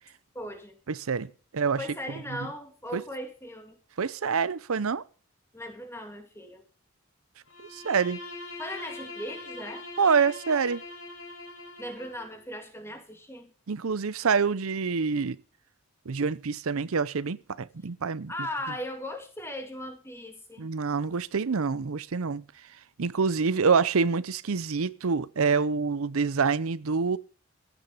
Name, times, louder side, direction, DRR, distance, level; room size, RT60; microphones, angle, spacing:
voice 1, 0.3-0.8 1.8-3.8 5.5-6.6 8.6-9.9 11.8-13.5 18.3-20.7, equal, 10° left, 2.2 m, -38 dB
voice 2, 0.9-1.8 2.4-2.5 2.9-3.0 4.0-5.0 7.6-8.2 10.0-10.8 13.7-15.4 16.1-18.3 20.6-22.4 23.0-27.2, right 5 dB, 80° right, 0.6 m, -26 dB
Bowed string instrument, 7.5-12.4, left 2 dB, 75° left, 5.7 m, -42 dB
15.0 x 9.8 x 5.5 m
head